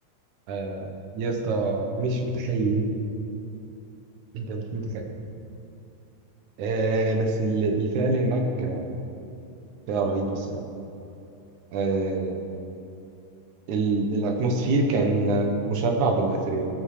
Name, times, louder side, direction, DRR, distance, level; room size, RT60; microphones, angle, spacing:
voice 1, 0.5-2.9 4.3-5.0 6.6-8.9 9.9-10.6 11.7-12.4 13.7-16.7, right 2 dB, 80° right, 3 dB, 2.5 m, -25 dB
15.5 x 5.9 x 4.8 m, 2.6 s
omnidirectional pair, 3.4 m